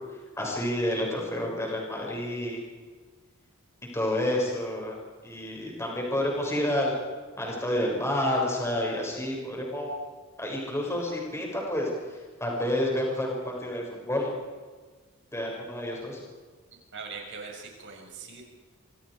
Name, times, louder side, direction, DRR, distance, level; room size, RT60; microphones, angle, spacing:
voice 1, 0.4-2.6 3.9-4.9 5.2-6.9 7.4-9.9 10.4-14.3 15.3-16.2, left 1 dB, 15° left, -1 dB, 6.7 m, -29 dB
voice 2, 16.9-18.4, right 5 dB, 60° right, 1 dB, 6.2 m, -41 dB
27.0 x 27.0 x 5.1 m, 1.4 s
head